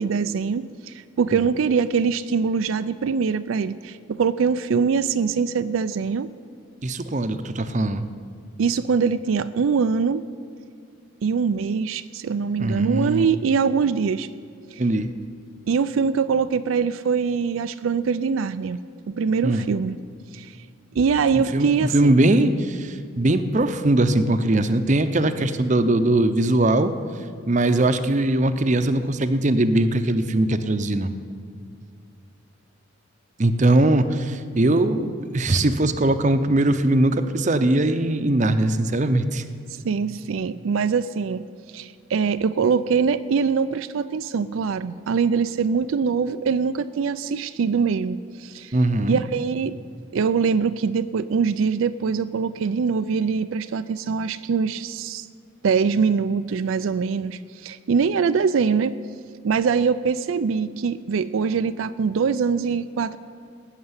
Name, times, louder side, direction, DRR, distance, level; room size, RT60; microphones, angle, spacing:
voice 1, 0.0-6.3 8.6-10.2 11.2-14.3 14.7-14.8 15.7-18.8 19.1-20.0 20.3-20.5 21.0-22.1 39.8-41.4 41.7-48.7 49.1-49.8 50.1-55.3 55.6-59.0 59.4-63.2, right 5 dB, 85° right, 12 dB, 0.4 m, -23 dB
voice 2, 6.8-8.1 12.6-13.3 14.8-15.1 19.4-19.7 21.3-26.9 27.5-31.1 33.4-39.4 48.7-49.2, right 1 dB, 35° right, 10 dB, 0.7 m, -21 dB
17.0 x 6.7 x 9.6 m, 2.2 s
head